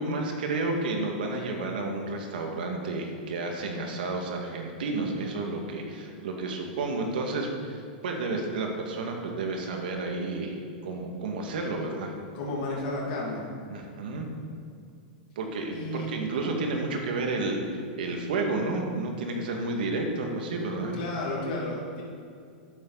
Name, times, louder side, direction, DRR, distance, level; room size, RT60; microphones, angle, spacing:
voice 1, 0.0-10.5 10.8-12.1 13.7-14.3 15.4-21.0, right 2 dB, 80° right, 2 dB, 2.0 m, -31 dB
voice 2, 12.3-13.4 15.7-16.2 20.9-22.0, left 2 dB, 60° left, -4 dB, 2.8 m, -32 dB
12.0 x 9.0 x 4.1 m, 2.3 s
supercardioid pair, 140°, 5 cm